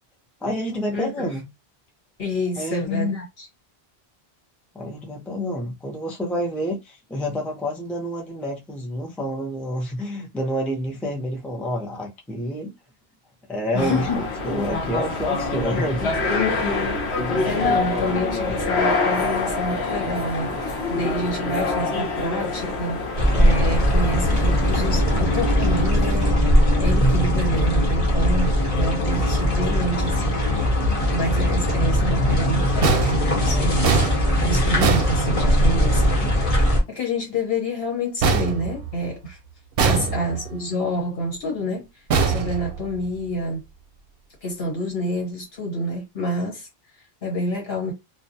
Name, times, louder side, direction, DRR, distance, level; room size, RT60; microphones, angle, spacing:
voice 1, 0.4-1.5 2.6-3.1 4.7-12.7 13.5-16.1 29.6-30.2 39.8-40.3, equal, ahead, 0.4 m, -28 dB
voice 2, 0.9-1.3 2.2-3.5 13.7-14.2 16.3-17.0 17.4-30.4 31.1-34.0 34.4-39.4 39.8-41.9 42.2-43.6 44.4-46.7 47.0-47.9, left 1 dB, 65° left, 1.4 m, -28 dB
sound 1, 13.7-25.9, left 3 dB, 85° left, 1.0 m, -26 dB
sound 2, 23.2-36.8, equal, 35° left, 0.9 m, -20 dB
sound 3, 32.8-35.9 38.2-39.3 39.8-40.6 42.1-43.2, right 5 dB, 70° right, 0.7 m, -23 dB
2.4 x 2.1 x 2.7 m
omnidirectional pair, 1.1 m